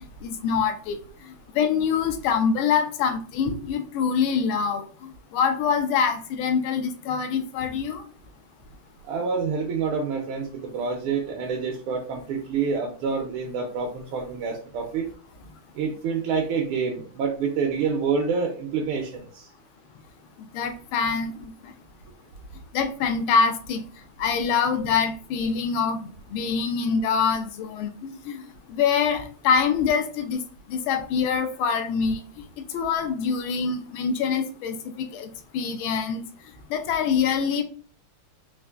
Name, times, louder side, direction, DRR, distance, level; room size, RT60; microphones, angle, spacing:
voice 1, 0.2-1.0 1.2-8.0 20.4-21.7 22.7-23.8 24.2-30.4 30.7-32.2 32.7-35.3 35.5-36.3 36.7-37.6, left 6 dB, 75° left, 1.4 m, -25 dB
voice 2, 9.1-15.1 15.8-19.5, right 5 dB, 85° right, 1.5 m, -27 dB
4.3 x 2.5 x 2.3 m
omnidirectional pair, 2.3 m